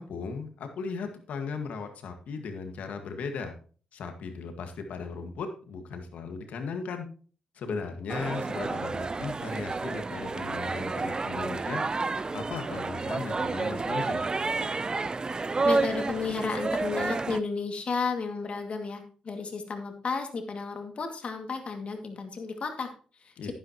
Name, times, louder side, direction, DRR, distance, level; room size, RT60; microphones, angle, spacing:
voice 1, 0.0-3.5 3.9-7.1 7.6-11.8 12.3-14.2 23.4-23.5, left 5 dB, 70° left, 6 dB, 1.7 m, -37 dB
sound 1, 8.1-17.4, right 3 dB, 35° right, 0.6 m, -30 dB
voice 2, 15.6-23.5, left 4 dB, 50° left, 4 dB, 2.2 m, -33 dB
10.5 x 10.0 x 3.0 m, 0.39 s
supercardioid pair, 50°, 2 cm